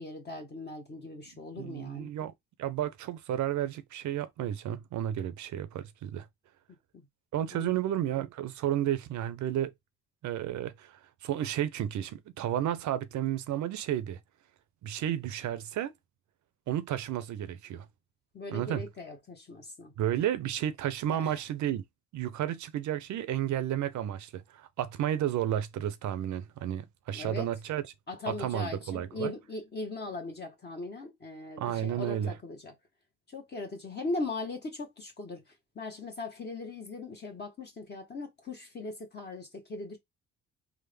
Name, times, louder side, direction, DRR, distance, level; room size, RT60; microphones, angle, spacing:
voice 1, 0.0-2.1 6.9-7.1 7.5-7.8 18.3-19.9 21.1-21.4 27.1-27.5 28.1-32.7 33.3-35.4 35.7-40.0, left 3 dB, 35° left, 1.0 m, -39 dB
voice 2, 1.5-2.3 2.6-6.3 7.3-9.7 10.2-14.2 14.8-15.9 16.7-17.9 18.5-18.8 20.0-21.8 22.1-27.8 28.4-29.3 31.6-32.3, right 11 dB, 70° right, 0.6 m, -32 dB
3.5 x 2.1 x 3.3 m
cardioid pair, 90°, 30 cm